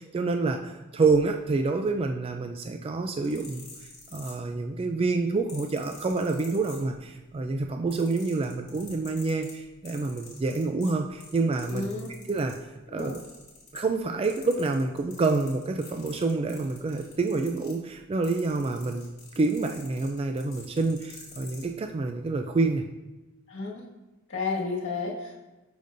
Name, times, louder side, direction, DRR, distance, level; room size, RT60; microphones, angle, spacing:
voice 1, 0.0-3.6 4.1-11.9 12.3-12.6 12.9-13.2 13.7-19.1 19.4-22.8, right 3 dB, 30° right, 5 dB, 0.3 m, -27 dB
sound 1, 3.1-4.8 5.5-7.2 7.6-12.6 13.0-14.0 14.2-21.7 22.4-22.6, left 4 dB, 35° left, 2.3 m, -48 dB
voice 2, 11.7-12.1 12.9-13.1 23.5-23.9 24.3-25.4, left 4 dB, 65° left, -3 dB, 1.8 m, -32 dB
12.0 x 5.1 x 2.6 m, 1.1 s
head